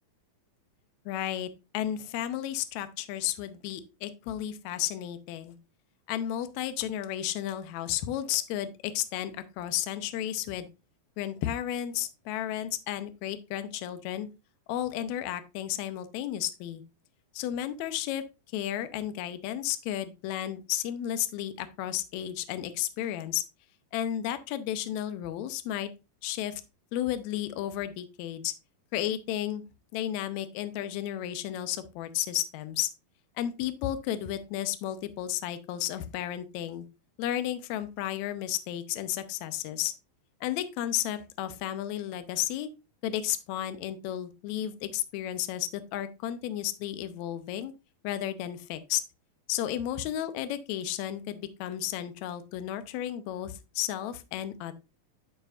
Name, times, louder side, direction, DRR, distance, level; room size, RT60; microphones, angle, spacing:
voice 1, 1.0-1.5 1.7-5.6 6.1-10.7 11.2-14.3 14.7-16.8 17.3-18.2 18.5-23.4 23.9-25.9 26.2-26.6 26.9-28.5 28.9-29.6 29.9-32.9 33.4-36.8 37.2-39.9 40.4-42.7 43.0-47.7 48.0-49.0 49.5-54.7, left 12 dB, 80° left, 11 dB, 1.6 m, -33 dB
11.5 x 5.1 x 2.4 m, 0.27 s
omnidirectional pair, 4.1 m